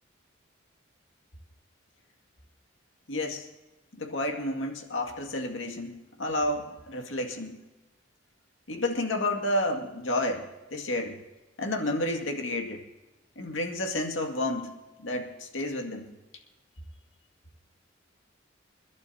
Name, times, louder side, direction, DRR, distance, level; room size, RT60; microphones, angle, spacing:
voice 1, 3.1-3.4 4.0-7.6 8.7-10.4 10.7-11.2 11.6-12.8 13.4-14.7 15.0-16.0, left 1 dB, 85° left, 3 dB, 2.1 m, -30 dB
30.0 x 11.5 x 2.8 m, 1.1 s
head